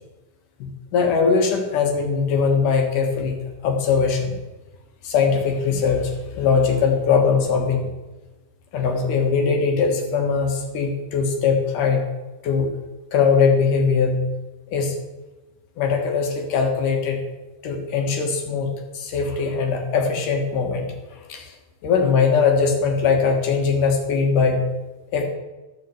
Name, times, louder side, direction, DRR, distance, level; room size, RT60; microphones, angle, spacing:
voice 1, 0.6-4.4 5.0-7.9 8.7-12.1 12.4-12.7 13.1-14.3 14.7-15.0 15.8-17.2 17.6-18.7 18.9-21.5 21.8-24.6 25.1-25.2, left 5 dB, 75° left, 3 dB, 3.1 m, -21 dB
13.0 x 6.7 x 7.7 m, 1.1 s
omnidirectional pair, 3.7 m